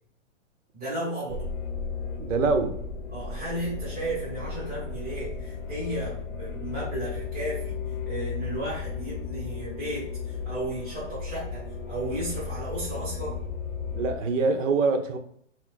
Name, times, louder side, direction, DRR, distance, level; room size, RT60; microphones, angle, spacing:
voice 1, 0.7-1.5 3.1-13.4, right 1 dB, 5° right, 0.5 m, -34 dB
sound 1, 1.3-14.2, left 5 dB, 45° left, 0.6 m, -35 dB
voice 2, 2.2-2.8 13.9-15.2, right 4 dB, 80° right, 0.6 m, -24 dB
2.5 x 2.3 x 3.6 m
hypercardioid pair, 175°, 38 cm